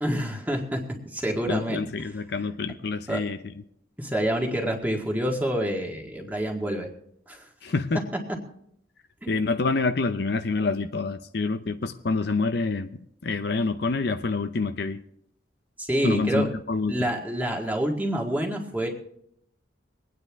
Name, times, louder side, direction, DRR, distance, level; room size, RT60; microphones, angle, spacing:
voice 1, 0.0-1.8 3.1-3.2 4.0-6.9 7.3-7.4 9.2-9.3 15.8-16.5 16.9-18.9, right 1 dB, 10° right, 0 dB, 1.8 m, -27 dB
voice 2, 1.5-3.5 7.6-8.0 9.3-15.0 16.0-17.1, left 3 dB, 55° left, 9 dB, 0.6 m, -27 dB
23.5 x 9.4 x 3.5 m, 0.73 s
head